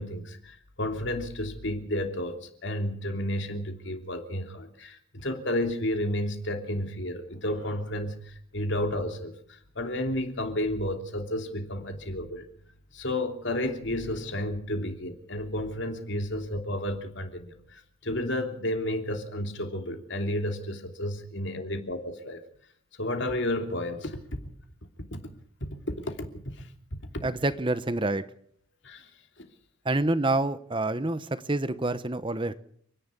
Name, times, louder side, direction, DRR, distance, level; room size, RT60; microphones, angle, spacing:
voice 1, 0.0-12.4 12.9-22.4 23.0-24.2 25.1-25.2 25.6-25.7 26.0-26.3 28.8-29.1, left 1 dB, 55° left, 5 dB, 3.0 m, -32 dB
voice 2, 27.2-28.3 29.8-32.6, right 2 dB, 25° right, 12 dB, 0.9 m, -27 dB
29.5 x 11.0 x 8.4 m, 0.62 s
head